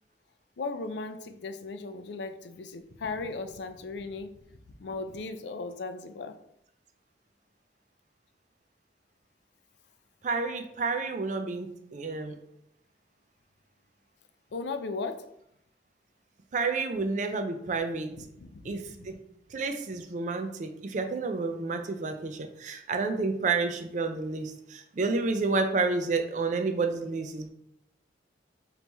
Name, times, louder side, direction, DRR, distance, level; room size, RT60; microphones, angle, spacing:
voice 1, 0.6-4.3 4.8-6.3 14.5-15.2 18.1-18.9, left 3 dB, 75° left, 9 dB, 0.4 m, -37 dB
voice 2, 10.2-12.4 16.5-18.1 18.6-19.2 19.5-27.5, right 4 dB, 40° right, 6 dB, 0.4 m, -30 dB
4.0 x 3.0 x 3.4 m, 0.78 s
head